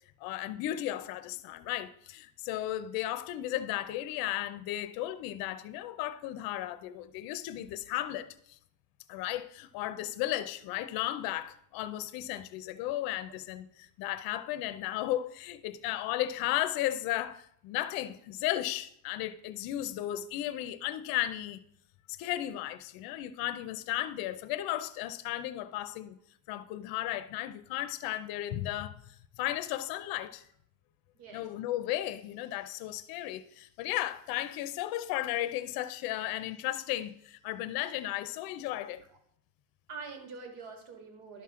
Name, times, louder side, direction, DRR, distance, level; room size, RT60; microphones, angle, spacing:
voice 1, 0.2-8.6 9.1-21.6 22.1-26.2 26.5-30.5 31.3-39.0, left 14 dB, 60° left, 0.6 m, -35 dB
voice 2, 39.9-41.4, right 4 dB, 70° right, 2.0 m, -45 dB
11.5 x 5.8 x 3.7 m
cardioid pair, 170°, 41 cm